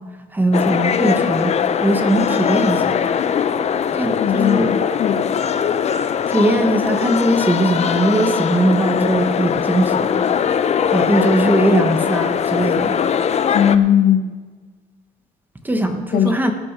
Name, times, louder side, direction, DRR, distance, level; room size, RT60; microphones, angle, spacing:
voice 1, 0.3-1.5 1.8-3.0 3.9-4.7 6.3-10.1 10.9-13.0 15.6-16.5, right 1 dB, 10° right, 5 dB, 1.3 m, -19 dB
sound 1, 0.5-13.8, left 7 dB, 40° left, 0.7 m, -20 dB
voice 2, 4.2-5.4 13.5-14.3 16.1-16.3, left 9 dB, 65° left, 6 dB, 1.4 m, -17 dB
18.0 x 6.3 x 6.0 m, 1.3 s
cardioid pair, 110°, 17 cm